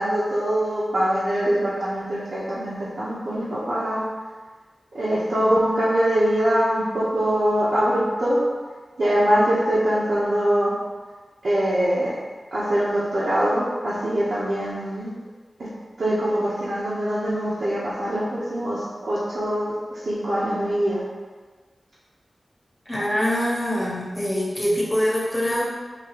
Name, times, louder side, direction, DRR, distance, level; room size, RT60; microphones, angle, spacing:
voice 1, 0.0-4.0 4.9-8.4 9.0-10.7 11.4-12.1 12.5-15.1 15.6-15.7 16.0-21.0, equal, 85° right, -11 dB, 0.9 m, -23 dB
voice 2, 22.9-25.6, equal, 20° left, -6 dB, 1.1 m, -24 dB
5.1 x 3.0 x 3.0 m, 1.4 s
wide cardioid pair, 105°, 0 cm